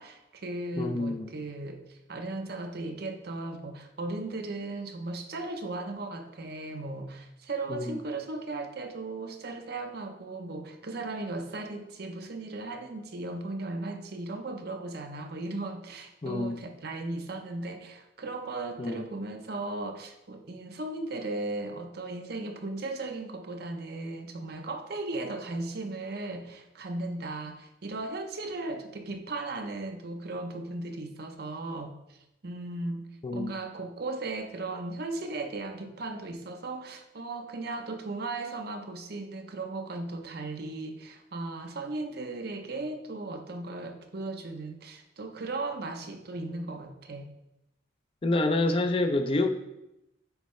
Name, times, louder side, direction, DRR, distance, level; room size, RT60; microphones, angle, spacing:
voice 1, 0.0-32.2 32.4-47.3, right 2 dB, 55° right, 5 dB, 0.6 m, -36 dB
voice 2, 0.8-1.3 7.7-8.0 16.2-16.6 18.8-19.1 33.2-33.5 48.2-49.5, left 2 dB, 30° left, 7 dB, 0.4 m, -27 dB
8.1 x 4.6 x 3.1 m, 0.88 s
head